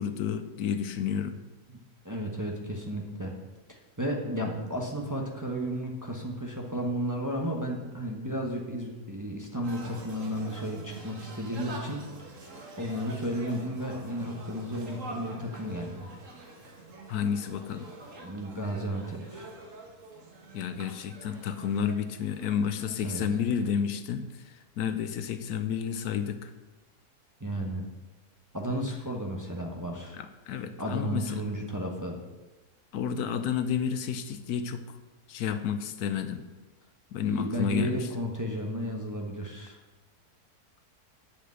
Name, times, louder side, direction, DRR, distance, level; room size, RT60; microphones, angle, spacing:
voice 1, 0.0-1.4 17.1-17.9 20.5-26.5 30.2-31.3 32.9-34.8 35.3-36.4 37.1-38.1, left 7 dB, 80° left, 10 dB, 1.2 m, -31 dB
voice 2, 2.0-3.3 3.7-12.0 12.4-16.1 18.2-19.5 23.0-23.2 27.4-27.8 28.5-30.2 30.8-32.2 37.3-39.8, equal, 15° right, 0 dB, 1.0 m, -33 dB
sound 1, 9.6-23.7, right 2 dB, 55° right, 1.7 m, -45 dB
8.8 x 5.0 x 7.8 m, 1.2 s
omnidirectional pair, 1.7 m